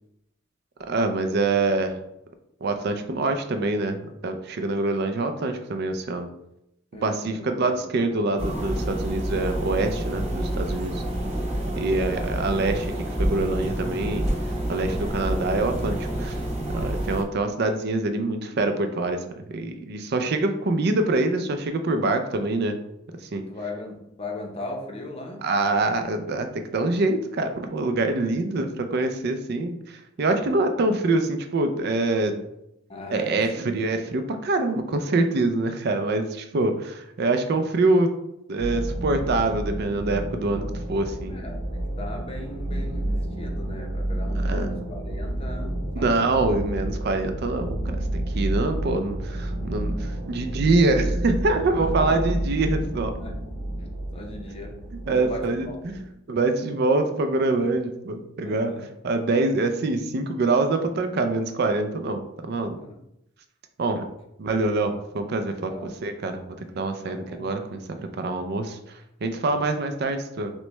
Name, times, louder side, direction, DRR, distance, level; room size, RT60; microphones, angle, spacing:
voice 1, 0.9-2.0 2.6-6.3 7.0-11.0 11.7-16.4 16.7-22.8 23.2-23.4 25.4-32.4 33.1-38.1 38.5-41.3 44.3-44.7 45.9-53.1 55.0-58.7 59.0-62.8 63.8-64.1 64.4-70.5, right 2 dB, 50° right, 7 dB, 0.4 m, -25 dB
voice 2, 6.9-7.9 23.4-25.4 30.4-30.6 32.9-33.6 41.3-46.3 51.8-52.2 53.2-53.4 54.1-54.8 55.1-55.8 57.6-57.7 58.4-58.9 62.8-63.0 65.7-65.9 67.0-67.5 69.4-69.7, left 1 dB, 25° left, 2 dB, 0.6 m, -38 dB
sound 1, 8.4-17.2, right 1 dB, 30° right, 0.8 m, -28 dB
sound 2, 38.6-56.1, right 1 dB, 85° right, 0.8 m, -30 dB
6.1 x 2.2 x 3.1 m, 0.82 s
head